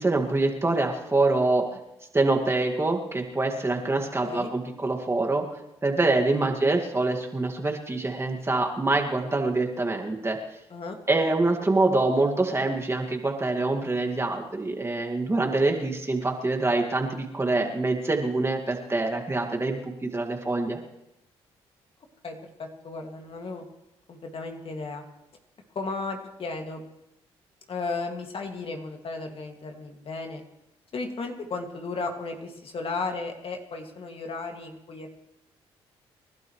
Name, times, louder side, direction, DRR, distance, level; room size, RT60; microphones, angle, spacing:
voice 1, 0.0-1.7 2.1-5.4 5.8-10.4 11.1-20.8, right 2 dB, 20° right, 2 dB, 2.1 m, -25 dB
voice 2, 22.2-23.6 24.1-25.0 25.7-26.8 27.7-30.4 30.9-35.1, left 3 dB, 55° left, 3 dB, 2.3 m, -34 dB
29.0 x 12.0 x 3.2 m, 0.89 s
supercardioid pair, 60°, 12 cm